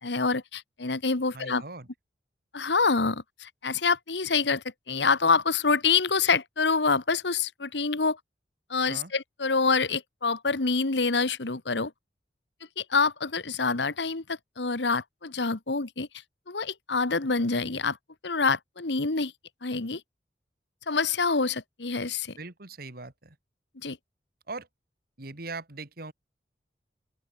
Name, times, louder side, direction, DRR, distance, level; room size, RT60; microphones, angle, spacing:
voice 1, 0.0-1.6 2.5-8.2 8.7-11.9 12.8-16.1 16.5-18.0 18.2-19.3 19.6-20.0 20.9-22.3 23.8-24.0, left 4 dB, 80° left, 1.5 m, -26 dB
voice 2, 1.3-1.9 8.9-9.1 22.4-23.4 24.5-24.7 25.2-26.1, right 3 dB, 60° right, 2.4 m, -40 dB
open air
head